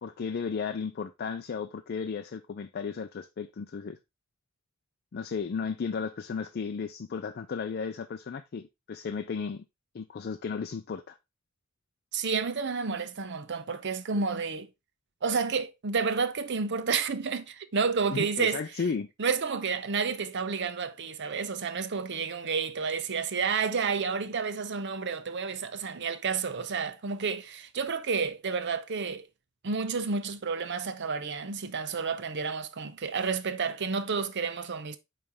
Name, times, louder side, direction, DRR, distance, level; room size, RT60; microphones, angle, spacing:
voice 1, 0.0-4.0 5.1-9.6 9.9-11.2 18.1-19.1, left 5 dB, 50° left, 0.4 m, -34 dB
voice 2, 12.1-14.7 15.2-18.6 19.2-29.3 29.6-35.0, right 5 dB, 60° right, 0.7 m, -30 dB
8.6 x 3.3 x 3.5 m
head